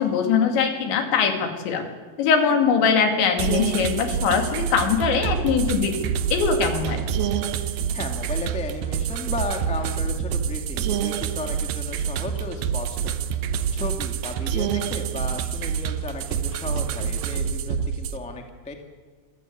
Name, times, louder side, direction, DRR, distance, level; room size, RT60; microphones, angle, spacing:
voice 1, 0.0-1.9 2.2-6.0 6.3-7.0, left 6 dB, 90° left, 5 dB, 4.7 m, -21 dB
sound 1, 3.4-18.2, right 8 dB, 70° right, 2.5 m, -27 dB
voice 2, 7.9-13.1 13.7-18.7, left 2 dB, 10° left, 4 dB, 0.4 m, -34 dB
25.5 x 14.5 x 9.3 m, 1.5 s
omnidirectional pair, 5.0 m